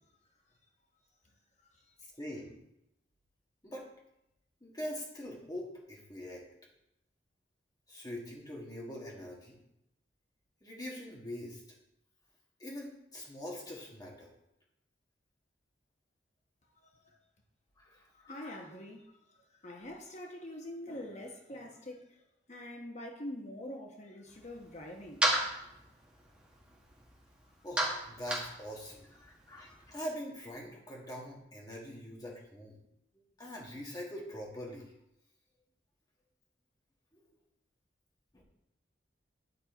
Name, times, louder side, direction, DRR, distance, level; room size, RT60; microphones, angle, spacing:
voice 1, 2.2-2.6 3.6-3.9 4.6-6.4 7.9-9.6 10.6-11.6 12.6-14.3 17.8-18.5 27.6-32.8 33.4-34.9 37.1-37.2 38.3-38.4, equal, 20° left, 1.6 m, -43 dB
voice 2, 18.2-19.1 19.6-22.1 22.5-25.2, left 1 dB, 40° left, 1.1 m, -44 dB
sound 1, 24.3-30.0, right 1 dB, 5° right, 1.6 m, -36 dB
9.5 x 4.4 x 4.3 m
head